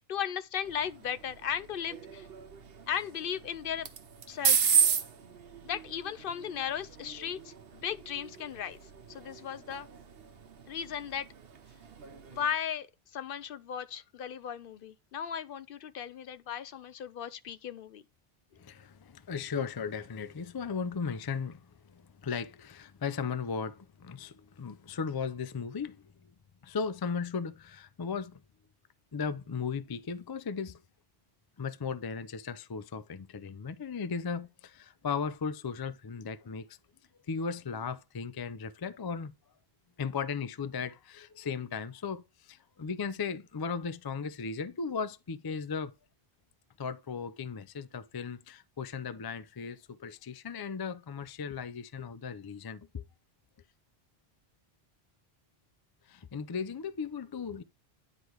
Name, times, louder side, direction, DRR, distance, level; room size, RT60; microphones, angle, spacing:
voice 1, 0.0-2.3 2.9-3.9 4.3-4.8 5.6-8.8 9.1-9.9 10.7-11.3 12.3-12.9 13.1-18.0, left 8 dB, 65° left, 0.7 m, -36 dB
sound 1, 0.6-12.5, right 7 dB, 70° right, 1.0 m, -34 dB
voice 2, 18.5-26.3 26.6-28.4 29.1-30.8 31.6-36.8 37.3-39.3 40.0-45.9 46.8-53.0 56.1-57.6, left 5 dB, 35° left, 0.3 m, -36 dB
9.8 x 3.4 x 4.5 m
omnidirectional pair, 1.1 m